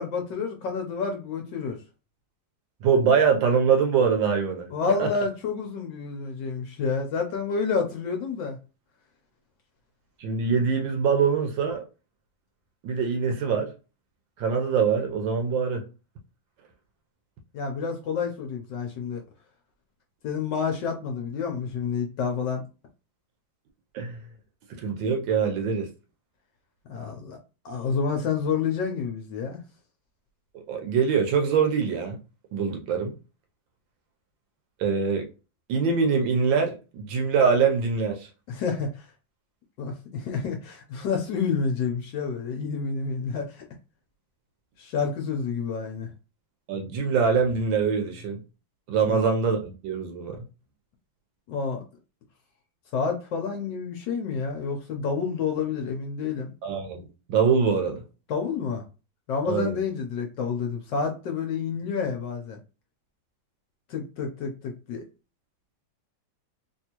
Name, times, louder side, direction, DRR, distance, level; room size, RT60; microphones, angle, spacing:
voice 1, 0.0-1.8 4.7-8.6 17.5-19.2 20.2-22.6 26.9-27.4 27.6-29.6 38.5-39.1 39.8-43.6 44.8-46.1 49.1-49.2 51.5-51.8 52.9-56.5 58.3-58.8 59.3-62.6 63.9-65.0, left 5 dB, 70° left, 1.1 m, -29 dB
voice 2, 2.8-4.7 5.0-5.1 10.2-11.8 12.8-13.7 14.4-15.9 23.9-24.2 24.7-25.9 30.5-32.2 32.5-33.1 34.8-35.3 35.7-38.3 46.7-48.4 48.9-50.5 56.6-58.0 59.5-59.8, right 6 dB, 70° right, 1.3 m, -24 dB
3.5 x 2.7 x 2.8 m
omnidirectional pair, 2.4 m